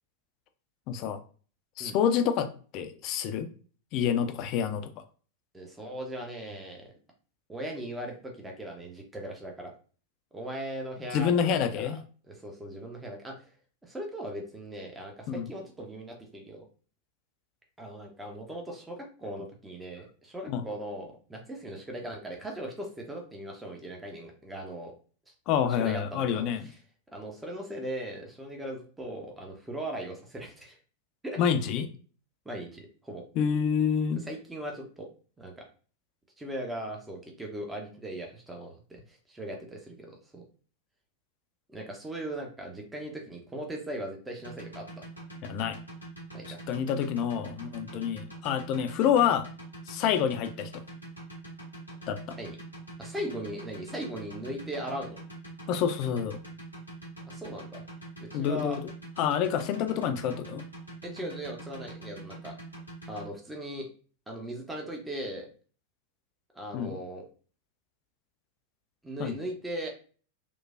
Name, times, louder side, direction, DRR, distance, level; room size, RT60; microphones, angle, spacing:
voice 1, 0.9-1.2 1.8-3.5 3.9-4.9 11.1-12.0 15.3-15.5 20.5-20.6 25.5-26.6 31.4-31.9 33.4-34.2 45.4-45.8 46.7-49.5 49.9-50.8 52.1-52.4 55.7-56.4 58.3-58.8 59.2-60.6 66.7-66.9 69.2-69.4, left 8 dB, 40° left, 0.3 m, -27 dB
voice 2, 5.5-6.9 7.5-9.7 10.3-11.9 12.3-13.4 13.8-16.6 17.8-24.9 25.3-25.4 25.8-26.8 27.1-30.8 31.2-31.4 32.4-33.2 34.2-35.1 35.4-35.7 36.4-40.4 41.7-45.0 46.3-46.6 52.4-52.6 53.0-55.2 57.2-57.8 58.2-58.8 61.0-62.5 63.1-63.9 64.3-65.5 66.5-67.2 69.0-69.9, right 1 dB, 10° right, 0.6 m, -39 dB
sound 1, 44.4-63.3, right 2 dB, 90° right, 1.0 m, -44 dB
3.1 x 2.1 x 2.4 m
figure-of-eight pair, 90°, 0 cm